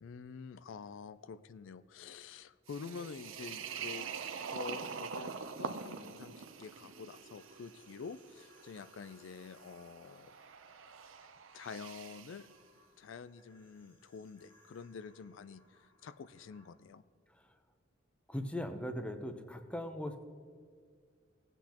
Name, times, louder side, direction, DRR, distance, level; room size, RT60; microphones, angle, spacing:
voice 1, 0.0-4.2 4.5-10.3 11.5-12.5 13.0-17.0, left 5 dB, 75° left, 14 dB, 0.4 m, -48 dB
sound 1, 2.7-12.5, right 6 dB, 90° right, 0.6 m, -45 dB
sound 2, 6.7-16.7, left 1 dB, 25° left, 2.2 m, -68 dB
voice 2, 18.3-20.2, left 1 dB, 5° left, 7 dB, 0.7 m, -39 dB
17.0 x 8.1 x 2.9 m, 2.1 s
head